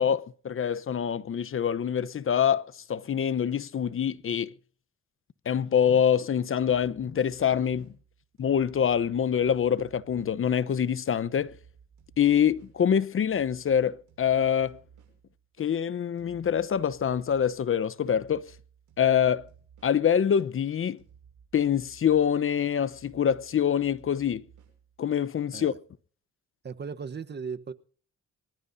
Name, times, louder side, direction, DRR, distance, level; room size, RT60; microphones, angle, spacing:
voice 1, 0.0-2.6 2.9-4.5 5.5-7.9 8.4-11.6 12.2-14.8 15.6-18.5 19.0-19.4 19.8-21.0 21.5-24.4 25.0-25.7, left 8 dB, 45° left, 0.9 m, -25 dB
sound 1, 6.6-11.0 11.4-15.8 16.2-20.6 21.0-25.4, right 7 dB, 75° right, 8.0 m, -57 dB
voice 2, 26.6-27.7, right 5 dB, 35° right, 1.1 m, -37 dB
25.0 x 13.5 x 2.7 m
cardioid pair, 90°, 30 cm